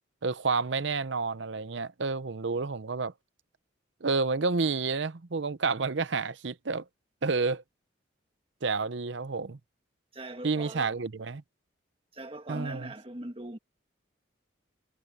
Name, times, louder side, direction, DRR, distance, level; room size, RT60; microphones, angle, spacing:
voice 1, 0.2-3.1 4.0-6.8 7.2-7.6 8.6-9.6 10.4-11.4 12.5-12.9, right 4 dB, 65° right, 0.7 m, -30 dB
voice 2, 10.1-10.9 12.1-13.6, right 1 dB, 30° right, 1.7 m, -41 dB
head